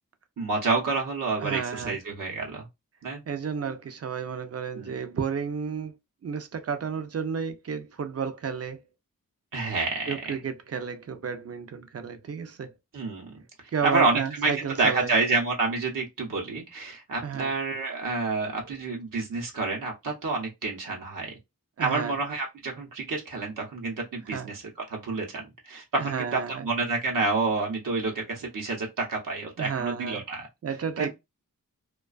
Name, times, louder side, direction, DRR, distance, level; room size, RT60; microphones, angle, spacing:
voice 1, 0.4-2.7 3.0-3.2 4.7-4.9 9.5-10.2 12.9-13.3 13.8-14.5 14.8-21.4 21.8-24.6 24.9-30.5 31.0-31.1, right 3 dB, 70° right, 0.8 m, -28 dB
voice 2, 1.4-2.0 3.3-6.0 6.2-8.8 10.1-12.7 13.7-15.2 17.2-17.6 21.8-22.2 24.3-24.5 26.0-26.7 29.6-30.2 30.6-31.1, right 6 dB, 45° right, 0.5 m, -32 dB
2.4 x 2.3 x 2.3 m
wide cardioid pair, 95°, 34 cm